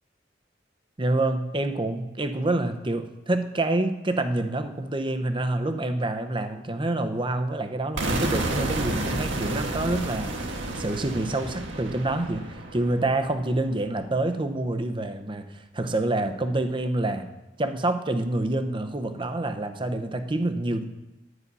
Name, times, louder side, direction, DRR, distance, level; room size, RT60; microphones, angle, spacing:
voice 1, 1.0-10.3 10.7-17.3 17.6-20.9, right 2 dB, 25° right, 8 dB, 0.8 m, -27 dB
sound 1, 8.0-13.8, right 2 dB, 85° right, 1.6 m, -31 dB
11.0 x 9.7 x 5.4 m, 1.0 s
head